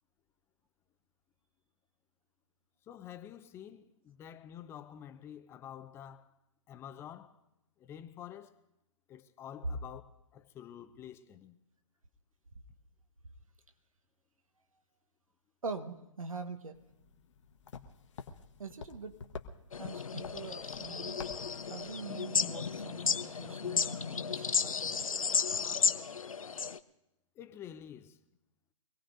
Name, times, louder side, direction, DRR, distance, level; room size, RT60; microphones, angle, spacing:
voice 1, 2.9-6.3 6.7-7.4 7.8-8.6 9.1-10.0 10.3-11.6 27.4-28.2, left 10 dB, 15° left, 0.6 m, -48 dB
voice 2, 15.6-16.8 18.6-19.1 19.8-21.2 21.7-25.0, right 4 dB, 80° right, 1.4 m, -43 dB
sound 1, 16.8-22.0, left 5 dB, 60° left, 1.3 m, -49 dB
sound 2, 19.7-26.8, left 6 dB, 85° left, 0.6 m, -33 dB
24.5 x 17.5 x 2.6 m
figure-of-eight pair, 135°, 17 cm